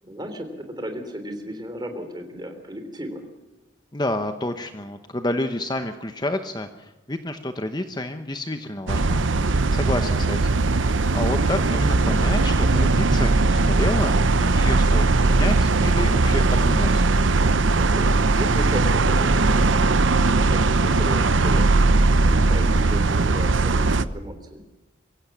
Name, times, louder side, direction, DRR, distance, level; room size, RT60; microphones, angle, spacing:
voice 1, 0.0-3.3 17.7-20.1 20.3-21.8 22.2-24.6, equal, 20° right, 7 dB, 3.4 m, -34 dB
voice 2, 3.9-17.1, left 1 dB, 20° left, 7 dB, 1.0 m, -29 dB
sound 1, 8.9-24.0, right 3 dB, 85° right, 0.9 m, -19 dB
24.0 x 16.5 x 7.2 m, 1.1 s
head